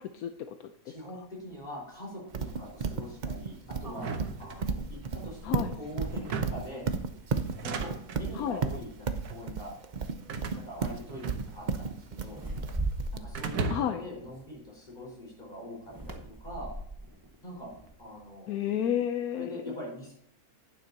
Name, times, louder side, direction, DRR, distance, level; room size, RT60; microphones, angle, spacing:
voice 1, 0.0-0.9 5.4-5.7 8.3-8.6 13.7-14.0 18.5-19.7, left 10 dB, 75° left, 8 dB, 1.1 m, -32 dB
voice 2, 0.8-4.1 4.4-6.9 7.6-9.7 10.5-12.4 13.1-16.7 17.4-17.7 18.0-18.5 19.3-20.1, equal, 30° left, -3 dB, 4.9 m, -43 dB
sound 1, 1.5-1.6 3.8-7.4 7.8-8.1 8.5-9.2 10.0-10.2 10.6-10.9 12.3-14.9 15.8-18.2, right 2 dB, 15° right, 0.9 m, -41 dB
Livestock farm animals working animals, 2.3-13.2, right 5 dB, 45° right, 0.6 m, -33 dB
sound 2, 3.9-5.1 6.1-6.8 7.4-8.3 9.1-9.5 10.3-11.8 12.1-12.9 13.4-14.1, right 4 dB, 90° right, 1.5 m, -37 dB
11.5 x 9.4 x 2.8 m, 0.69 s
omnidirectional pair, 1.6 m